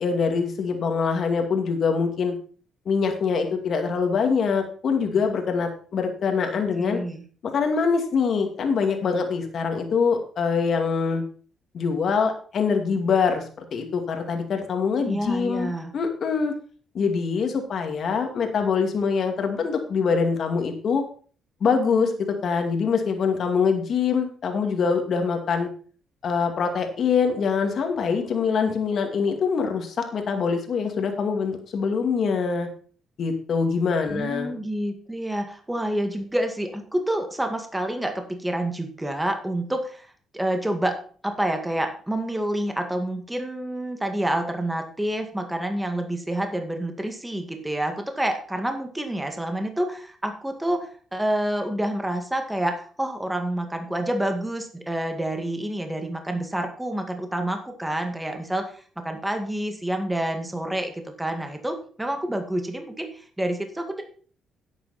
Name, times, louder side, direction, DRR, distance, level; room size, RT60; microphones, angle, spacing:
voice 1, 0.0-2.4 2.9-7.0 7.4-11.2 11.7-13.4 13.7-16.5 16.9-21.0 21.6-22.1 22.4-25.7 26.2-32.7 33.2-34.5, left 5 dB, 60° left, 5 dB, 2.3 m, -24 dB
voice 2, 6.8-7.2 15.1-15.9 34.1-40.1 40.3-41.0 41.2-64.0, right 1 dB, 10° right, 5 dB, 2.0 m, -28 dB
11.0 x 8.1 x 4.3 m, 0.43 s
cardioid pair, 90°, 0 cm